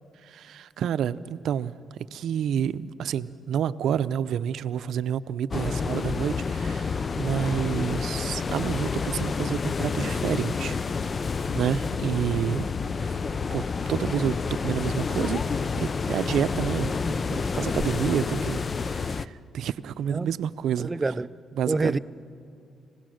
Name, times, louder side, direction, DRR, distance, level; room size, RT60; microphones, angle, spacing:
voice 1, 0.2-1.7 2.1-10.8 11.5-12.7 13.0-13.2 13.5-15.4 15.8-20.9 21.6-22.0, right 9 dB, 70° right, 0.5 m, -29 dB
sound 1, 5.5-19.3, left 5 dB, 35° left, 0.5 m, -29 dB
voice 2, 20.8-21.3 21.7-22.0, right 3 dB, 25° right, 0.5 m, -27 dB
26.5 x 17.0 x 6.4 m
cardioid pair, 90°, 0 cm